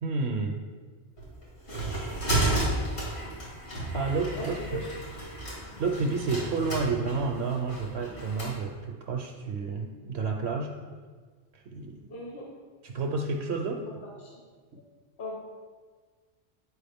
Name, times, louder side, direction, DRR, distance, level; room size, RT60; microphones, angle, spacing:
voice 1, 0.0-0.6 3.9-4.5 5.8-10.7 11.5-12.1 12.8-13.9, right 4 dB, 65° right, 1 dB, 0.8 m, -30 dB
sound 1, 1.2-8.5, right 1 dB, 65° left, 2.5 m, -32 dB
voice 2, 4.3-5.2 12.1-12.5 14.2-14.4 15.2-15.3, left 1 dB, 45° left, -2 dB, 1.2 m, -38 dB
8.5 x 4.7 x 3.5 m, 1.5 s
omnidirectional pair, 1.2 m